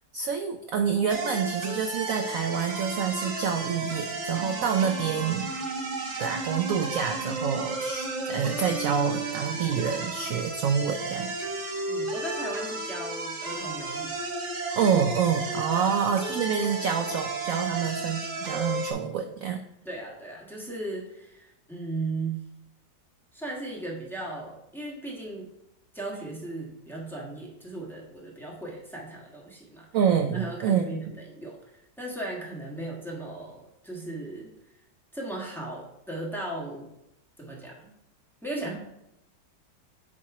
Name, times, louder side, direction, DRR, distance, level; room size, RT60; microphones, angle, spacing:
voice 1, 0.1-5.5 6.2-11.3 14.8-19.6 29.9-30.9, right 7 dB, 90° right, 4 dB, 0.7 m, -27 dB
sound 1, 1.1-18.9, right 3 dB, 50° right, 1.1 m, -33 dB
voice 2, 11.9-14.1 15.7-16.0 19.8-22.4 23.3-25.5 25.9-29.9 30.3-34.5 35.1-36.9 37.4-37.9 38.4-38.8, right 2 dB, ahead, -3 dB, 1.2 m, -37 dB
8.4 x 3.0 x 4.7 m, 0.86 s
omnidirectional pair, 2.0 m